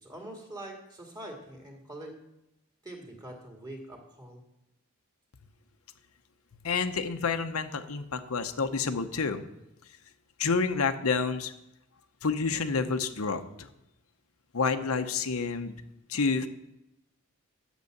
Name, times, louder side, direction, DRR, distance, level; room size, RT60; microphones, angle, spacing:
voice 1, 0.0-2.1 2.8-4.4, right 1 dB, 20° right, 0 dB, 2.2 m, -44 dB
voice 2, 6.6-9.4 10.4-11.5 12.2-13.7 14.5-15.7 16.1-16.5, left 4 dB, 85° left, 7 dB, 0.8 m, -29 dB
8.2 x 8.0 x 6.6 m, 0.89 s
head